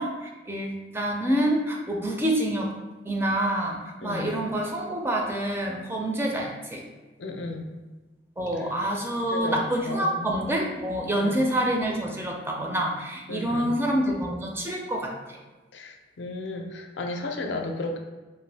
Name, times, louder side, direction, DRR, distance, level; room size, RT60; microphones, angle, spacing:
voice 1, 0.0-2.7 3.1-6.8 8.4-15.4, right 1 dB, 15° right, 0 dB, 0.4 m, -27 dB
voice 2, 4.0-4.3 7.2-7.7 8.6-8.7 9.3-10.3 11.1-11.4 13.3-13.8 15.7-18.0, left 2 dB, 70° left, 3 dB, 0.4 m, -34 dB
2.5 x 2.5 x 3.3 m, 1.2 s
head